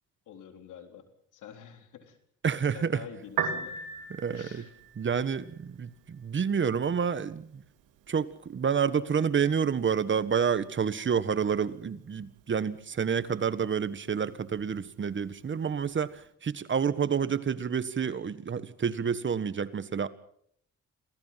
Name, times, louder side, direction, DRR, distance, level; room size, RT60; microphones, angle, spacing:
voice 1, 0.3-1.0 1.3-2.2 2.7-3.8 4.3-4.7, left 8 dB, 80° left, 6 dB, 3.8 m, -47 dB
voice 2, 2.4-3.0 4.2-4.6 5.0-7.6 8.1-20.1, right 7 dB, 40° right, 14 dB, 1.5 m, -29 dB
Piano, 3.2-16.3, right 6 dB, 85° right, 2.6 m, -43 dB
27.5 x 17.0 x 5.8 m, 0.64 s
cardioid pair, 90°, 30 cm